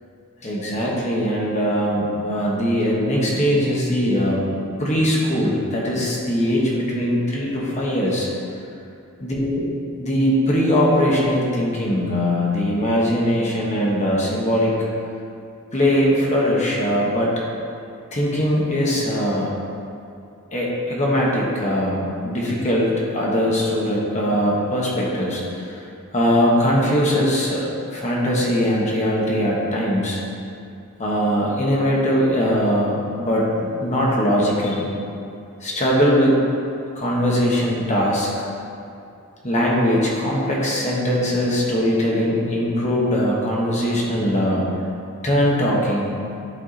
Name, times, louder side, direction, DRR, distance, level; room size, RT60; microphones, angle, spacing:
voice 1, 0.4-4.4 4.8-8.3 9.2-9.6 10.0-14.8 15.7-17.3 18.1-19.5 20.5-25.8 26.1-30.2 31.0-34.9 35.6-36.4 36.9-38.5 39.4-44.7 45.2-46.1, equal, 30° left, -4 dB, 1.4 m, -21 dB
11.0 x 4.6 x 4.2 m, 2.6 s
head